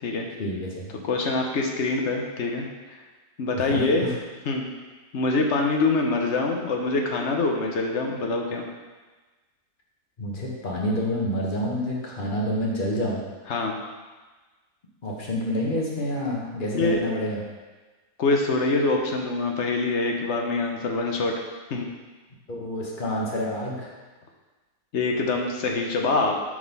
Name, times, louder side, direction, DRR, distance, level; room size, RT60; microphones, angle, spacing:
voice 1, 0.4-0.9 3.6-4.1 10.2-13.2 15.0-17.4 22.5-23.9, left 1 dB, 35° left, -3 dB, 1.3 m, -28 dB
voice 2, 1.1-3.0 3.4-4.1 4.5-4.7 5.1-8.6 13.5-13.8 16.7-17.0 18.2-21.4 21.7-21.9 24.9-26.3, left 3 dB, 55° left, 2 dB, 1.0 m, -25 dB
6.1 x 4.0 x 5.3 m, 1.3 s
omnidirectional pair, 1.6 m